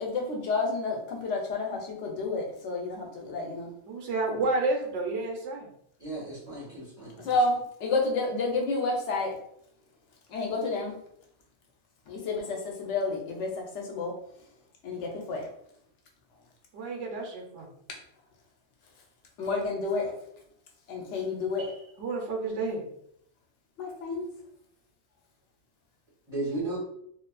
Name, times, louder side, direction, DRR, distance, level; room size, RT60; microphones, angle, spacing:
voice 1, 0.0-3.7 7.2-7.5 7.8-9.3 10.3-10.9 12.1-14.1 14.8-15.4 19.4-20.1 20.9-21.7 23.8-24.3, left 3 dB, 85° left, 1 dB, 1.0 m, -30 dB
voice 2, 3.9-5.7 16.7-17.7 21.6-22.8 26.6-26.7, right 3 dB, 85° right, 1 dB, 1.0 m, -31 dB
voice 3, 6.0-7.3 26.3-26.8, right 2 dB, 35° right, -11 dB, 1.3 m, -35 dB
2.6 x 2.5 x 2.2 m, 0.71 s
omnidirectional pair, 1.2 m